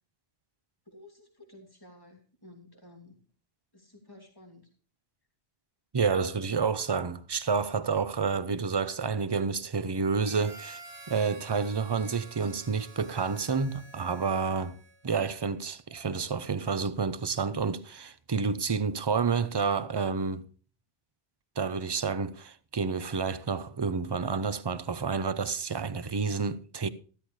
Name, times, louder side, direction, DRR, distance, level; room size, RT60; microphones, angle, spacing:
voice 1, 0.8-3.2 3.7-4.7, left 1 dB, 20° left, 3.1 m, -53 dB
voice 2, 5.9-10.8 11.1-14.8 15.0-20.4 21.6-26.9, right 5 dB, 30° right, 0.6 m, -29 dB
Harmonica, 10.1-15.2, right 3 dB, 90° right, 2.1 m, -50 dB
13.5 x 13.0 x 3.2 m
omnidirectional pair, 1.0 m